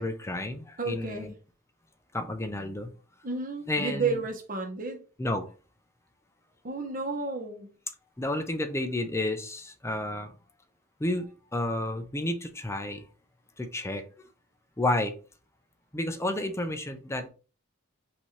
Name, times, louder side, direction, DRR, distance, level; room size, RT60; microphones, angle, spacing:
voice 1, 0.0-1.3 2.1-2.9 3.7-4.2 5.2-5.5 8.2-10.3 11.0-13.0 13.6-14.0 14.8-15.1 15.9-17.3, left 1 dB, 15° left, 0.5 m, -31 dB
voice 2, 0.8-1.3 3.2-5.0 6.6-7.7, right 3 dB, 40° right, 1.1 m, -32 dB
5.7 x 2.8 x 3.2 m
head